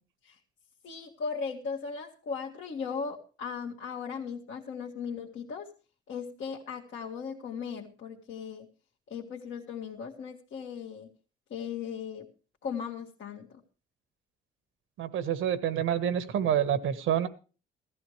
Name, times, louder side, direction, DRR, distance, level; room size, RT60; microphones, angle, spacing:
voice 1, 0.8-5.7 6.1-8.7 9.1-11.1 11.5-12.3 12.6-13.5, left 6 dB, 75° left, -2 dB, 1.8 m, -37 dB
voice 2, 15.0-17.3, right 9 dB, 85° right, 12 dB, 1.4 m, -27 dB
16.0 x 14.0 x 3.2 m, 0.35 s
cardioid pair, 90°, 20 cm